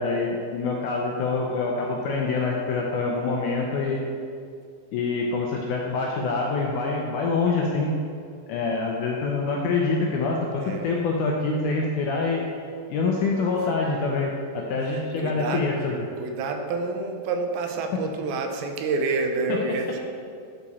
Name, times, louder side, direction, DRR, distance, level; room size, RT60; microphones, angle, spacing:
voice 1, 0.0-4.0 4.9-7.9 8.5-12.4 12.9-15.9, left 3 dB, 80° left, -1 dB, 1.8 m, -25 dB
voice 2, 10.6-11.0 13.6-13.7 14.8-20.0, right 3 dB, 90° right, 5 dB, 2.5 m, -29 dB
11.0 x 4.8 x 4.2 m, 2.3 s
omnidirectional pair, 4.3 m